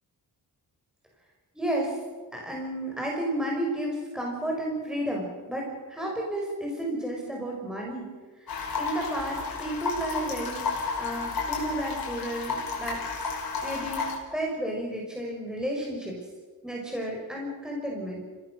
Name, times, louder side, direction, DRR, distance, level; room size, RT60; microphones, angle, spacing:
voice 1, 1.5-2.0 2.3-8.1 8.4-8.5 8.8-10.7 11.0-13.0 13.6-16.3 16.6-18.2, right 1 dB, ahead, -2 dB, 5.4 m, -32 dB
sound 1, 8.5-14.2, left 4 dB, 60° left, 6.0 m, -32 dB
29.5 x 17.5 x 6.3 m, 1.4 s
wide cardioid pair, 115°, 40 cm